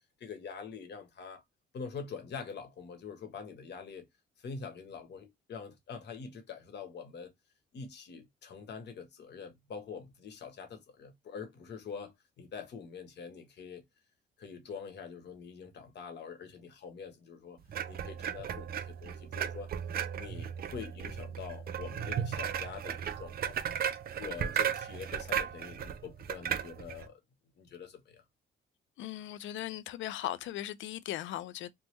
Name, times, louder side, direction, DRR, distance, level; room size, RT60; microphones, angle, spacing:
voice 1, 0.2-1.4 1.7-4.1 4.4-7.3 7.7-13.8 14.4-17.6 17.9-19.7 20.2-23.6 24.2-27.2 27.6-28.2, left 6 dB, 60° left, 1.0 m, -45 dB
sound 1, 17.7-27.1, right 8 dB, 50° right, 0.4 m, -35 dB
voice 2, 29.0-31.7, left 13 dB, 75° left, 0.4 m, -38 dB
3.3 x 2.1 x 3.0 m
cardioid pair, 90°, 20 cm